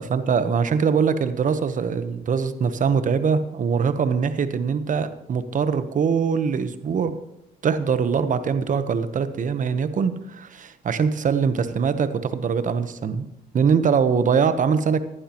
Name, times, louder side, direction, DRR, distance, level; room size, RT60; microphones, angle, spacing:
voice 1, 0.0-7.2 7.6-13.3 13.5-15.0, right 6 dB, 55° right, 11 dB, 1.1 m, -22 dB
15.0 x 11.0 x 3.1 m, 0.89 s
supercardioid pair, 70°, 16 cm